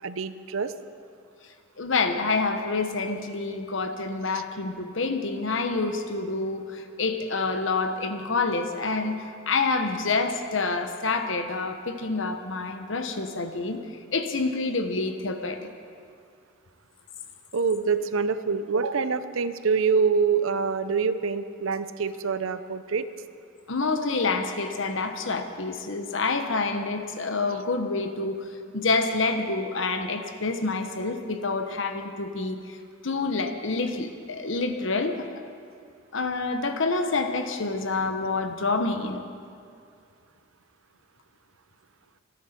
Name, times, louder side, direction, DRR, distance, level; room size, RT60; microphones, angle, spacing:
voice 1, 0.0-0.7 4.3-4.4 17.5-23.1, right 5 dB, 75° right, 12 dB, 0.6 m, -25 dB
voice 2, 1.8-9.2 9.5-13.8 14.1-15.6 23.7-28.4 28.7-32.8 33.0-35.3 36.1-39.2, left 3 dB, 60° left, 7 dB, 1.1 m, -27 dB
25.5 x 10.5 x 4.4 m, 2.3 s
head